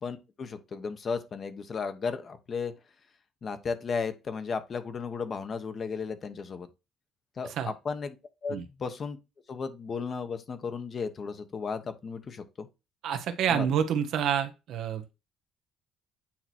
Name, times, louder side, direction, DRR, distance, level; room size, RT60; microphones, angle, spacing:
voice 1, 0.0-2.7 3.4-6.7 7.4-8.2 8.4-9.2 9.5-12.7 13.5-13.7, left 5 dB, 35° left, 1.1 m, -34 dB
voice 2, 13.0-15.0, right 8 dB, 65° right, 1.1 m, -28 dB
8.7 x 3.0 x 4.3 m
cardioid pair, 120°, 0 cm